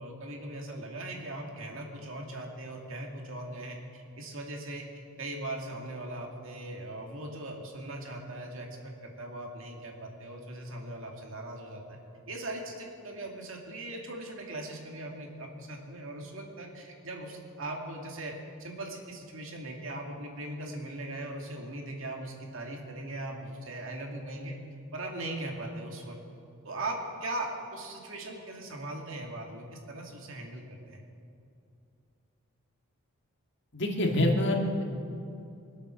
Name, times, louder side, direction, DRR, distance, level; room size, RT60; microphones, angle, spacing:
voice 1, 0.0-4.9 5.2-12.0 12.3-18.3 18.6-24.6 24.9-26.2 26.6-31.0, right 1 dB, 65° right, 1 dB, 2.4 m, -39 dB
voice 2, 33.7-34.8, left 1 dB, 55° left, 1 dB, 2.0 m, -26 dB
24.0 x 8.1 x 6.4 m, 2.6 s
head